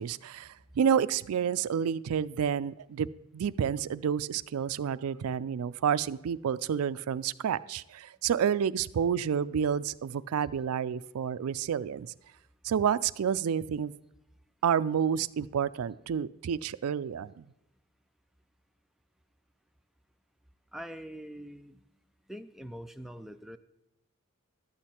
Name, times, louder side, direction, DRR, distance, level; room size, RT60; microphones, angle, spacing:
voice 1, 0.0-3.1 3.3-12.1 12.6-13.9 14.6-17.4, right 8 dB, 80° right, 16 dB, 0.3 m, -29 dB
voice 2, 20.7-21.8 22.3-23.6, equal, ahead, 8 dB, 0.3 m, -43 dB
12.0 x 8.2 x 4.3 m, 0.90 s
head